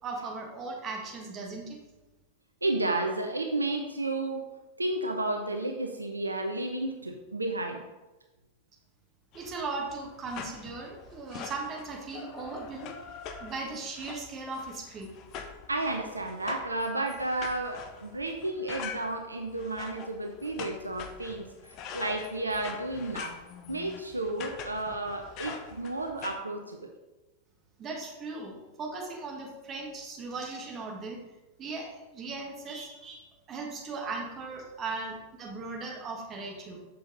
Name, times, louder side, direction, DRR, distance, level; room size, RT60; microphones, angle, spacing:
voice 1, 0.0-1.8 9.3-12.9 13.4-15.1 27.8-31.2 31.6-36.8, right 3 dB, 30° right, 0 dB, 1.5 m, -38 dB
voice 2, 2.6-4.4 4.8-7.8 15.7-23.3 23.7-26.9 34.7-34.8, right 2 dB, 80° right, 4 dB, 0.6 m, -32 dB
sound 1, 9.3-26.4, left 6 dB, 40° left, 0.6 m, -44 dB
6.7 x 5.6 x 3.9 m, 1.1 s
figure-of-eight pair, 90°, 0 cm